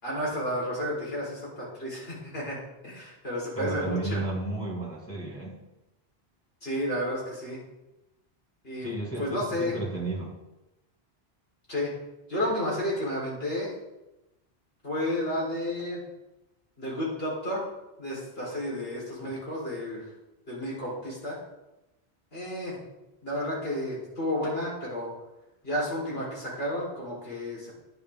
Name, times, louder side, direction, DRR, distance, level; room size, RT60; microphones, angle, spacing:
voice 1, 0.0-4.2 6.6-7.6 8.6-8.9 9.2-9.8 11.7-11.9 12.3-13.7 14.8-16.0 16.8-17.7 18.0-20.1 20.5-21.4 22.3-22.8 23.2-25.1 25.6-27.7, left 1 dB, 70° left, -5 dB, 4.5 m, -31 dB
voice 2, 3.6-5.6 8.8-10.4, right 2 dB, 10° left, -6 dB, 2.2 m, -33 dB
10.5 x 10.0 x 3.7 m, 0.96 s
omnidirectional pair, 1.1 m